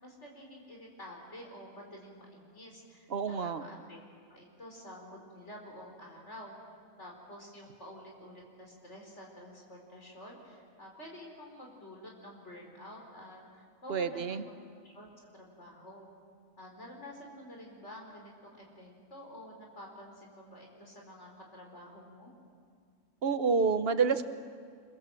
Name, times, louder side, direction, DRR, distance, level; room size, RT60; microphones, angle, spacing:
voice 1, 0.0-4.0 4.3-6.5 7.0-14.5 14.8-16.0 16.6-22.3, left 1 dB, 55° left, 0 dB, 4.6 m, -49 dB
voice 2, 3.1-3.6 13.9-14.4 23.2-24.2, right 5 dB, 50° right, 11 dB, 1.2 m, -28 dB
26.0 x 23.0 x 7.7 m, 2.1 s
omnidirectional pair, 1.4 m